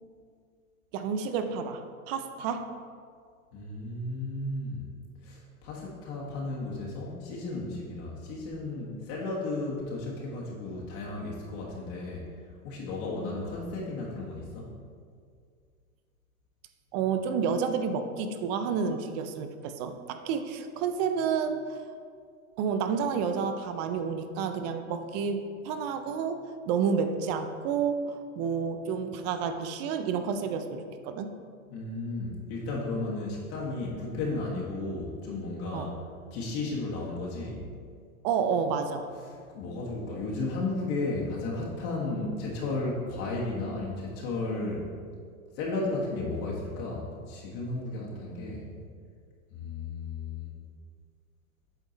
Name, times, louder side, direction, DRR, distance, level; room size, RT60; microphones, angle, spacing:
voice 1, 0.9-2.7 16.9-21.8 22.6-31.3 35.7-35.9 38.2-39.1, right 6 dB, 35° right, 8 dB, 0.4 m, -30 dB
voice 2, 3.5-4.8 5.2-12.3 12.6-14.7 31.7-35.9 36.3-37.6 39.5-44.9 45.6-48.7 49.5-50.5, left 2 dB, 45° left, -4 dB, 1.4 m, -34 dB
8.1 x 3.6 x 4.0 m, 2.1 s
hypercardioid pair, 120°, 43 cm